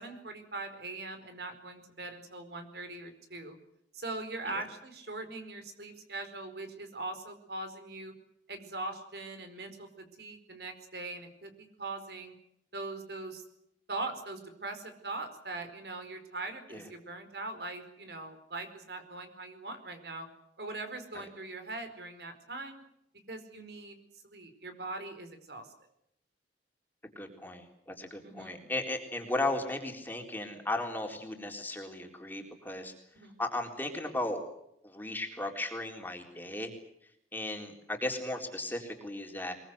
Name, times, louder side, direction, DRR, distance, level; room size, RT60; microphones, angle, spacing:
voice 1, 0.0-3.6 3.9-8.1 8.5-12.3 12.7-13.4 13.9-20.3 20.6-22.8 23.3-24.0 24.2-25.7 28.2-28.7 33.1-33.4, right 2 dB, 65° right, 8 dB, 4.8 m, -41 dB
voice 2, 27.0-32.9 33.4-34.4 34.8-36.7 37.3-39.5, left 2 dB, 10° left, 2 dB, 3.9 m, -36 dB
23.0 x 22.5 x 8.1 m, 0.77 s
head